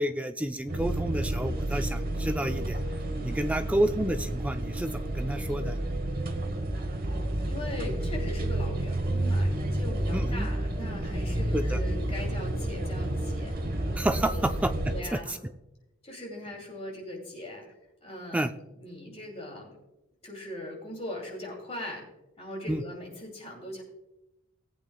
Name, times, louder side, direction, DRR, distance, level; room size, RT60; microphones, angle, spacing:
voice 1, 0.0-2.8 3.2-5.8 10.1-10.5 11.5-11.8 14.0-14.7 15.3-15.4 18.3-18.5 22.7-22.8, right 1 dB, 5° right, 8 dB, 0.3 m, -29 dB
sound 1, 0.7-15.0, right 1 dB, 40° right, 1.1 m, -30 dB
voice 2, 7.5-13.6 14.2-14.5 14.9-15.4 16.0-17.6 18.0-18.4 18.8-19.8 20.2-22.0 22.4-23.8, left 1 dB, 30° left, 0 dB, 2.6 m, -40 dB
19.0 x 8.5 x 2.2 m, 0.96 s
head